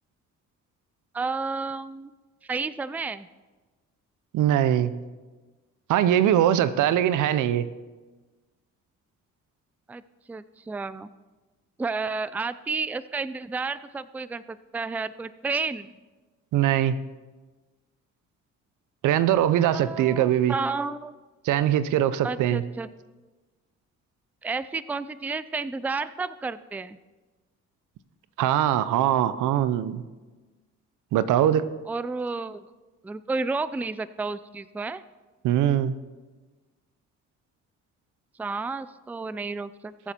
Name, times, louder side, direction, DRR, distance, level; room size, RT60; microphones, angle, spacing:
voice 1, 1.1-2.1 2.4-3.3 9.9-10.0 10.3-11.1 11.8-15.9 19.7-21.1 22.2-22.9 24.4-27.0 31.9-32.7 33.0-35.0 38.4-40.1, right 4 dB, 5° right, 16 dB, 0.3 m, -31 dB
voice 2, 4.3-4.9 5.9-7.7 16.5-16.9 19.0-20.5 21.4-22.6 28.4-30.0 31.1-31.7 35.4-35.9, right 11 dB, 85° right, 15 dB, 0.7 m, -22 dB
21.5 x 7.1 x 4.4 m, 1.3 s
cardioid pair, 90°, 30 cm